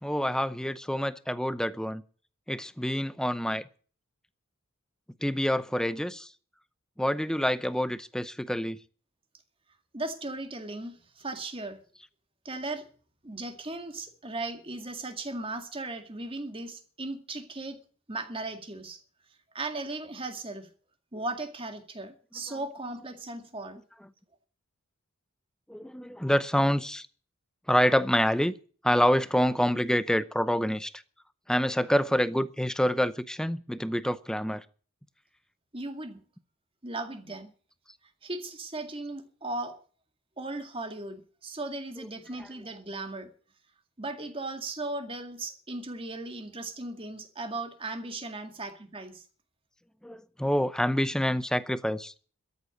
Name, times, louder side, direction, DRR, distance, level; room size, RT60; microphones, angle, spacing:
voice 1, 0.0-2.0 2.5-3.6 5.2-6.3 7.0-8.8 25.7-27.1 27.7-28.5 28.8-30.9 31.5-34.6 42.4-42.5 50.0-52.1, equal, 5° left, 0.6 m, -27 dB
voice 2, 9.9-11.8 12.4-12.9 13.2-17.8 18.1-19.0 19.5-20.7 21.1-23.8 35.7-36.2 36.8-37.5 38.2-39.8 40.4-43.3 44.0-49.2, right 2 dB, 25° right, 2.1 m, -37 dB
13.5 x 8.2 x 9.2 m
head